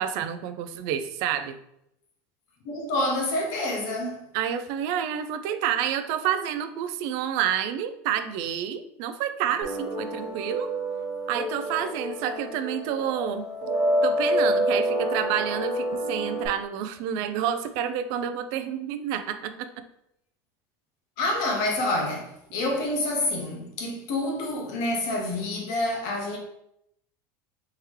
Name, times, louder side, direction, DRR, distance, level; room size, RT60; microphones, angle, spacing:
voice 1, 0.0-1.6 4.3-10.7 11.3-13.5 14.0-19.7, right 9 dB, 55° right, 0.3 m, -29 dB
voice 2, 2.6-4.2 21.2-26.4, left 1 dB, 55° left, 0.9 m, -28 dB
sound 1, 9.6-16.5, equal, 35° right, 1.0 m, -27 dB
3.6 x 2.9 x 3.1 m
cardioid pair, 165°, 8 cm